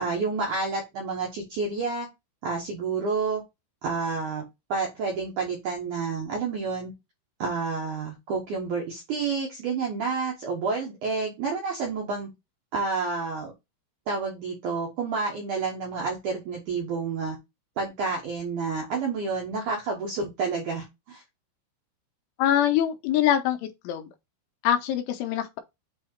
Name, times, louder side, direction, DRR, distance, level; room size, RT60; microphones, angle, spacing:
voice 1, 0.0-2.1 2.4-3.4 3.8-4.4 4.7-6.9 7.4-12.3 12.7-13.5 14.1-17.4 17.8-21.2, right 4 dB, 80° right, 1.8 m, -29 dB
voice 2, 22.4-24.1 24.6-25.6, left 11 dB, 85° left, 3.2 m, -24 dB
8.4 x 2.9 x 4.4 m
omnidirectional pair, 5.6 m